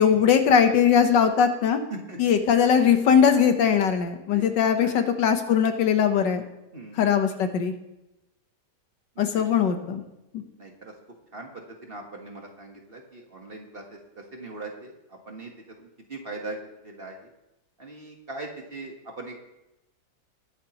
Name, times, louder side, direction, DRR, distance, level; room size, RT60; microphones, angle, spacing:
voice 1, 0.0-1.8 2.2-6.4 7.0-7.7 9.2-10.0, left 7 dB, 80° left, 7 dB, 1.7 m, -20 dB
voice 2, 6.7-7.1 9.2-9.3 10.6-10.9 11.3-14.0 14.3-14.9 15.3-15.5 16.1-16.6 16.8-17.1 17.8-19.4, right 2 dB, 35° right, 1 dB, 1.5 m, -39 dB
21.0 x 8.1 x 3.0 m, 0.92 s
omnidirectional pair, 1.9 m